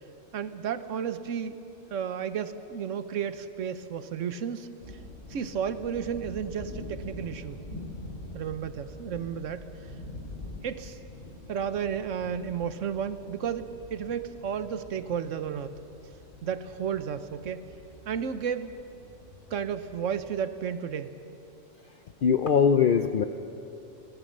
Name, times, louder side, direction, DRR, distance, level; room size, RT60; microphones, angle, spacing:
voice 1, 0.3-1.6 1.9-4.7 5.3-7.6 8.3-9.7 10.6-11.0 11.5-15.7 16.4-17.7 18.1-18.7 19.5-21.1, right 8 dB, 80° right, 12 dB, 1.2 m, -32 dB
sound 1, 4.8-20.3, left 1 dB, 85° left, 4.5 m, -45 dB
voice 2, 22.2-23.2, left 7 dB, 55° left, 8 dB, 0.7 m, -21 dB
23.5 x 18.0 x 6.6 m, 2.8 s
omnidirectional pair, 1.3 m